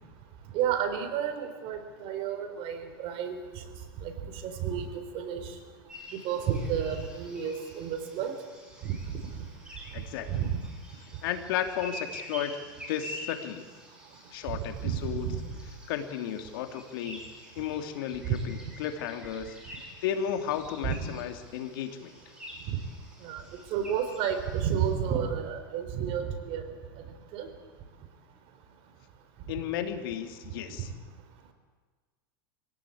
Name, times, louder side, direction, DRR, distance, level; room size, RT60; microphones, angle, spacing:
voice 1, 0.5-3.4 4.0-4.1 4.4-5.5 6.1-8.3 8.8-9.4 10.3-10.6 14.8-15.4 18.2-18.4 20.8-21.1 22.7-22.8 23.2-23.4 23.7-26.6 27.3-27.5, right 8 dB, 50° right, 7 dB, 4.1 m, -31 dB
sound 1, 5.9-24.9, equal, 5° right, 7.9 m, -47 dB
voice 2, 9.9-10.5 11.2-12.6 12.9-13.7 14.3-15.3 15.9-17.2 17.6-19.6 20.0-22.1 29.5-30.9, left 9 dB, 70° left, 6 dB, 2.8 m, -34 dB
25.5 x 17.5 x 8.6 m, 1.4 s
supercardioid pair, 130°, 12 cm